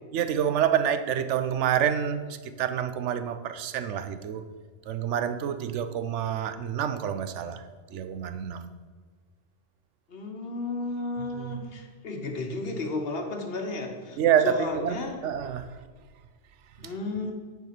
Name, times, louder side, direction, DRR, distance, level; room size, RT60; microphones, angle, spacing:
voice 1, 0.1-4.4 4.9-7.6 7.9-8.7 11.2-11.7 14.2-15.8, right 9 dB, 85° right, 10 dB, 0.9 m, -27 dB
voice 2, 10.1-15.2 16.8-17.3, left 3 dB, 60° left, 4 dB, 1.2 m, -33 dB
9.3 x 4.8 x 5.8 m, 1.5 s
omnidirectional pair, 1.2 m